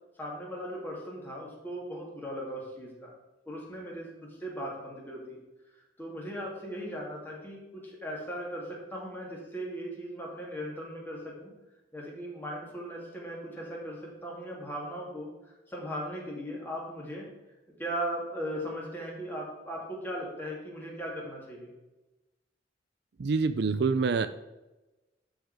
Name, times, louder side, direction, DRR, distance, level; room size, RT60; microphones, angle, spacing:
voice 1, 0.2-3.1 3.5-5.4 6.0-11.5 11.9-17.3 17.8-21.7, equal, 10° left, -3 dB, 2.9 m, -38 dB
voice 2, 23.2-24.3, right 4 dB, 65° right, 12 dB, 0.5 m, -26 dB
12.5 x 5.1 x 5.1 m, 1.0 s
head